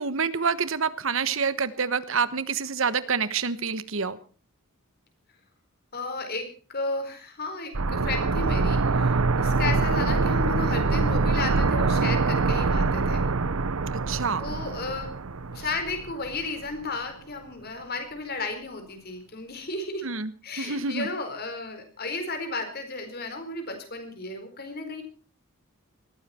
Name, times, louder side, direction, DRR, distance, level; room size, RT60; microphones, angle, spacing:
voice 1, 0.0-4.2 14.1-14.4 20.0-20.3 20.6-21.1, right 5 dB, 65° right, 15 dB, 1.2 m, -27 dB
voice 2, 5.9-13.3 14.4-15.2 15.5-20.1 20.4-25.0, left 3 dB, 45° left, 6 dB, 4.5 m, -33 dB
sound 1, 7.7-16.5 16.7-16.8, right 3 dB, 85° right, 0.9 m, -24 dB
20.0 x 15.5 x 4.4 m, 0.38 s
head